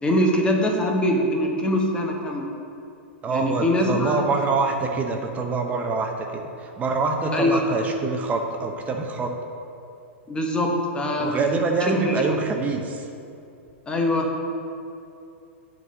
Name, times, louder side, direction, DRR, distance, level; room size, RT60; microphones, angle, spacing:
voice 1, 0.0-2.4 3.3-4.2 7.3-7.6 10.3-11.3 11.8-12.2 13.9-14.3, left 1 dB, 15° left, 1 dB, 1.1 m, -23 dB
voice 2, 3.2-9.3 11.2-13.1, right 3 dB, 20° right, 3 dB, 0.7 m, -25 dB
8.1 x 4.0 x 6.2 m, 2.6 s
hypercardioid pair, 130°, 7 cm